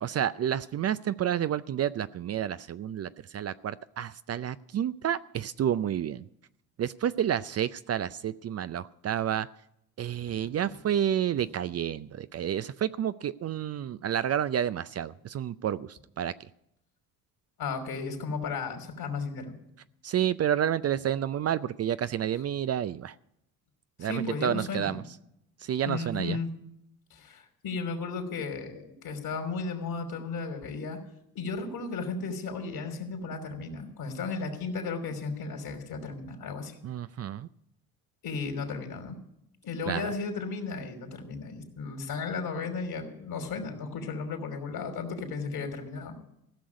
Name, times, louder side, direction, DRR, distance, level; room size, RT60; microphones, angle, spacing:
voice 1, 0.0-6.3 6.8-9.5 10.0-16.3 20.0-23.2 24.0-25.0 25.6-26.4 36.8-37.5 39.9-40.1, right 10 dB, 40° right, 14 dB, 0.5 m, -30 dB
voice 2, 17.6-19.5 24.0-25.0 25.8-26.5 27.1-31.0 31.3-36.8 38.2-39.2 39.6-46.2, left 4 dB, 60° left, 4 dB, 3.2 m, -35 dB
15.5 x 6.2 x 9.5 m, 0.79 s
hypercardioid pair, 60°, 41 cm